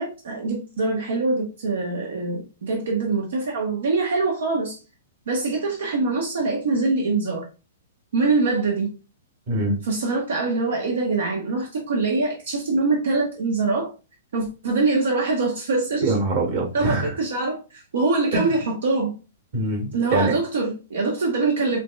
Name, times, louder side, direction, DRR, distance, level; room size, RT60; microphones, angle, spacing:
voice 1, 0.0-4.8 5.3-7.4 8.1-8.9 9.8-13.9 14.3-16.1 16.7-19.1 19.9-21.8, right 3 dB, 75° right, 0 dB, 1.1 m, -24 dB
voice 2, 9.5-9.8 16.0-17.1 18.3-18.5 19.5-20.3, right 2 dB, 45° right, 1 dB, 1.9 m, -24 dB
5.1 x 2.9 x 2.3 m, 0.31 s
hypercardioid pair, 155°, 0 cm